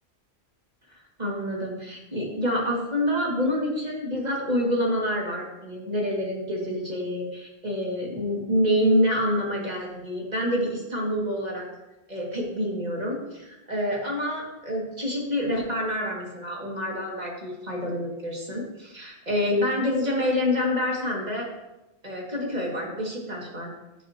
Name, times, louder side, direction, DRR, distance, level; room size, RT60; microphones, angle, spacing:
voice 1, 0.9-11.7 12.1-21.5 22.0-23.7, equal, 40° right, -3 dB, 2.4 m, -27 dB
15.0 x 6.8 x 3.0 m, 1.0 s
omnidirectional pair, 1.1 m